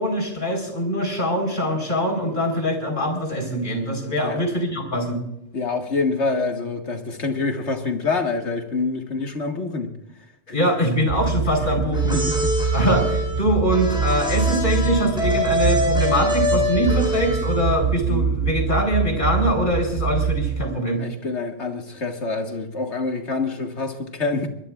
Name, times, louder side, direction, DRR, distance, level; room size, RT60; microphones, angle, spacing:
voice 1, 0.0-5.2 10.5-12.2 12.7-21.0, equal, 45° left, 4.4 m, -23 dB
voice 2, 5.5-9.9 12.1-12.4 18.1-18.3 21.0-24.5, left 3 dB, 80° left, 2.1 m, -26 dB
sound 1, 11.1-20.7, right 6 dB, 50° right, 0.7 m, -24 dB
sound 2, 11.9-17.8, left 2 dB, 5° right, 6.4 m, -25 dB
22.5 x 20.5 x 2.5 m
omnidirectional pair, 1.2 m